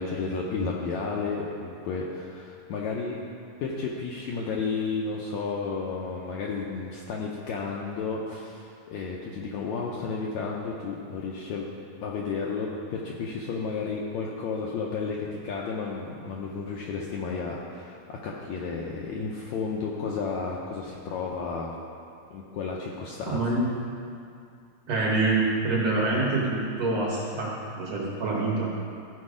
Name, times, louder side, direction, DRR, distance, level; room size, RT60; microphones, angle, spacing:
voice 1, 0.0-3.2 3.6-11.7 12.0-21.8 22.3-23.4, left 4 dB, 75° left, -2 dB, 1.7 m, -32 dB
voice 2, 23.3-23.6 24.9-28.7, right 3 dB, 60° right, -5 dB, 1.8 m, -26 dB
14.0 x 4.6 x 4.9 m, 2.4 s
omnidirectional pair, 3.9 m